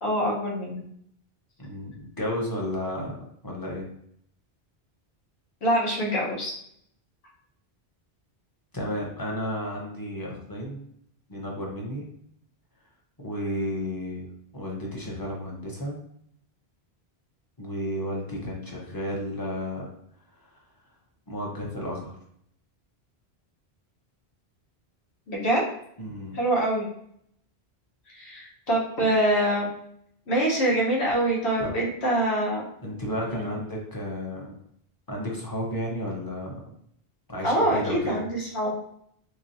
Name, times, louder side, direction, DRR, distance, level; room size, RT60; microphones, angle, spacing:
voice 1, 0.0-0.8 5.6-6.5 25.3-25.7 26.3-26.8 28.1-29.7 30.3-32.6 33.3-33.5 37.4-38.7, right 1 dB, 85° left, -4 dB, 1.4 m, -25 dB
voice 2, 1.6-3.2 3.4-3.8 8.7-10.9 11.3-12.0 13.2-14.3 14.5-16.0 17.6-19.9 20.4-20.6 21.3-22.1 26.0-26.4 31.6-31.7 32.8-34.5 35.1-36.5 37.3-38.2, equal, 20° left, -3 dB, 0.8 m, -32 dB
3.9 x 3.0 x 2.7 m, 0.69 s
omnidirectional pair, 1.1 m